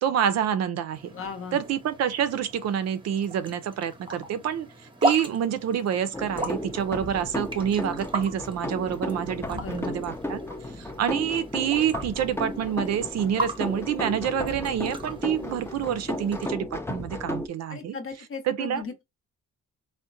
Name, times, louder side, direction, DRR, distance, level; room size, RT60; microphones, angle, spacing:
voice 1, 0.0-1.1 1.5-4.7 5.0-10.4 10.8-17.9 18.5-18.8, right 9 dB, 60° right, 0.4 m, -27 dB
sound 1, 0.9-16.5, right 2 dB, 15° right, 0.8 m, -37 dB
voice 2, 1.1-1.6 9.5-10.0 17.7-19.0, left 5 dB, 45° left, 0.8 m, -37 dB
sound 2, 6.1-17.5, left 1 dB, 10° left, 0.4 m, -34 dB
3.6 x 2.1 x 2.5 m
cardioid pair, 90°, 30 cm